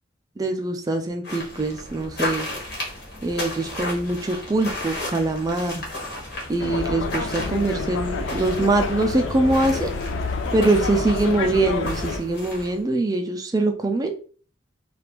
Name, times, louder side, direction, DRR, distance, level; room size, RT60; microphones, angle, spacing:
voice 1, 0.4-2.5 3.2-5.9 6.5-9.9 10.5-14.1, right 2 dB, 20° right, 5 dB, 0.3 m, -23 dB
sound 1, 1.2-12.8, left 1 dB, 55° left, 1.3 m, -34 dB
sound 2, 6.6-12.2, left 3 dB, 80° left, 0.4 m, -28 dB
3.3 x 2.4 x 2.9 m, 0.40 s
head